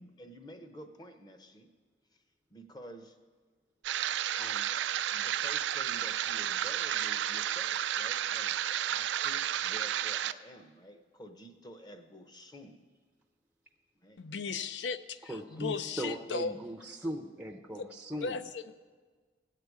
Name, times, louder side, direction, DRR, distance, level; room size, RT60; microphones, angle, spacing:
voice 1, 0.0-1.7 2.1-2.2 2.5-3.2 4.4-4.8 5.1-8.6 8.9-12.8 14.0-14.2, equal, 25° left, 7 dB, 0.8 m, -50 dB
sound 1, 3.8-10.3, right 11 dB, 75° right, 0.3 m, -32 dB
voice 2, 14.2-16.6 17.7-17.9 18.2-18.7, left 5 dB, 75° left, 12 dB, 0.5 m, -36 dB
voice 3, 15.3-18.4, equal, 10° right, 2 dB, 0.5 m, -39 dB
17.0 x 6.7 x 4.8 m, 1.5 s
head